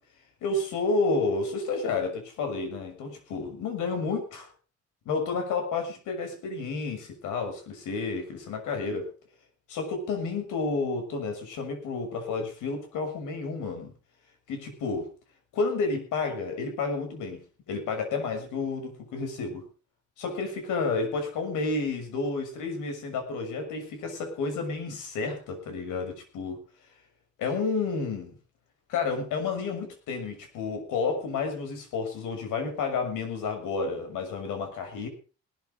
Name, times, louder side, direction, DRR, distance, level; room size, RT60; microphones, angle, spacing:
voice 1, 0.4-4.5 5.0-9.1 9.7-13.9 14.5-15.1 15.5-19.6 20.2-26.6 27.4-28.4 28.9-35.1, left 4 dB, 90° left, 6 dB, 6.6 m, -30 dB
19.0 x 14.0 x 3.7 m, 0.35 s
cardioid pair, 90°, 30 cm